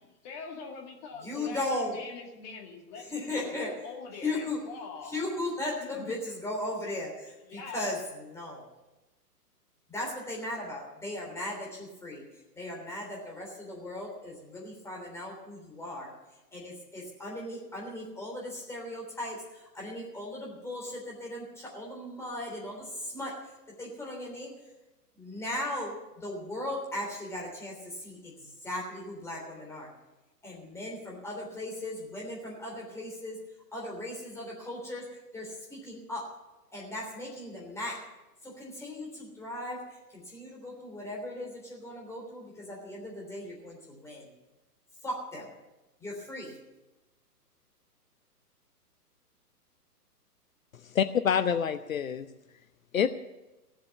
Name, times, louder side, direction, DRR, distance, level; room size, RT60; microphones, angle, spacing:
voice 1, 0.0-5.1 5.8-6.1 7.5-7.8, left 5 dB, 30° left, 2 dB, 2.1 m, -43 dB
voice 2, 1.2-2.0 3.0-3.7 4.2-4.6 5.0-8.6 9.9-12.2 12.5-16.1 16.5-23.4 23.8-24.5 25.2-29.9 30.4-33.4 33.7-35.1 35.3-36.3 36.7-38.0 38.4-44.3 45.0-45.5 46.0-46.6, left 1 dB, 5° left, -3 dB, 3.4 m, -37 dB
voice 3, 50.7-52.3 52.9-53.1, left 8 dB, 55° left, 11 dB, 0.7 m, -27 dB
16.5 x 7.6 x 8.2 m, 1.0 s
figure-of-eight pair, 120°, 48 cm